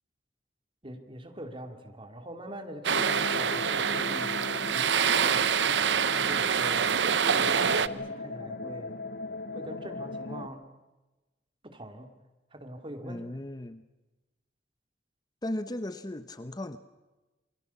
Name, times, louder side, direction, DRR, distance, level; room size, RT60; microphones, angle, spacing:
voice 1, 0.8-6.9 7.3-8.9 9.5-10.6 11.6-12.1 12.5-13.3, right 1 dB, 30° right, 5 dB, 2.8 m, -43 dB
sound 1, 2.8-7.9, right 7 dB, 75° right, 0.8 m, -26 dB
sound 2, 2.9-10.5, left 3 dB, 55° left, 1.0 m, -38 dB
voice 2, 13.0-13.8 15.4-16.8, left 1 dB, 25° left, 11 dB, 0.8 m, -36 dB
28.0 x 22.5 x 7.1 m, 1.1 s
head